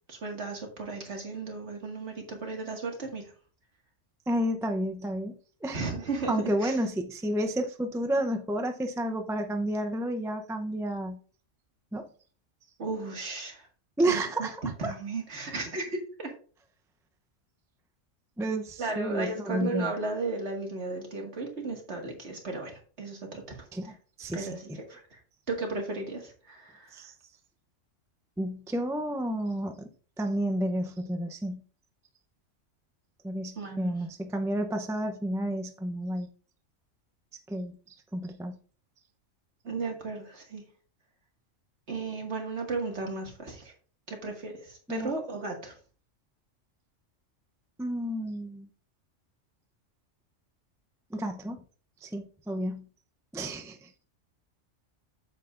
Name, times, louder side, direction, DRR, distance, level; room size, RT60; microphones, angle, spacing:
voice 1, 0.1-3.3 5.7-6.3 6.6-6.8 12.8-13.7 14.1-16.3 18.8-23.6 24.3-25.2 25.5-27.0 33.6-33.9 39.6-40.6 41.9-43.7 44.1-45.7, right 3 dB, 60° right, 2.2 m, -35 dB
voice 2, 4.3-5.3 5.6-5.8 6.3-11.2 11.9-12.0 14.0-14.6 18.4-19.9 23.7-23.9 24.2-24.6 26.9-27.1 28.4-29.9 30.2-31.6 33.2-36.3 37.5-38.5 44.9-45.2 47.8-48.7 51.1-51.6 52.0-52.8 53.3-54.1, right 1 dB, 5° right, 0.4 m, -31 dB
8.2 x 7.7 x 2.5 m
omnidirectional pair, 1.3 m